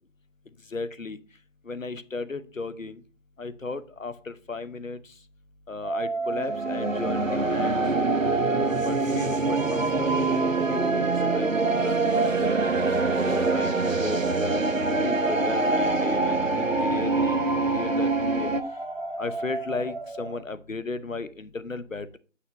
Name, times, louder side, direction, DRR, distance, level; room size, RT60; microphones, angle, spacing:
voice 1, 0.7-1.2 1.6-3.0 3.4-5.1 5.7-7.8 8.4-11.1 11.3-12.7 13.1-14.6 15.0-17.4 17.7-18.1 18.4-18.5 19.2-22.2, left 3 dB, 85° left, 14 dB, 0.9 m, -35 dB
sound 1, 5.8-13.7 14.0-20.4, right 2 dB, 40° right, 0.8 m, -33 dB
sound 2, 6.3-18.6, right 3 dB, 90° right, 0.9 m, -25 dB
9.5 x 6.4 x 2.9 m, 0.37 s
figure-of-eight pair, 170°, 38 cm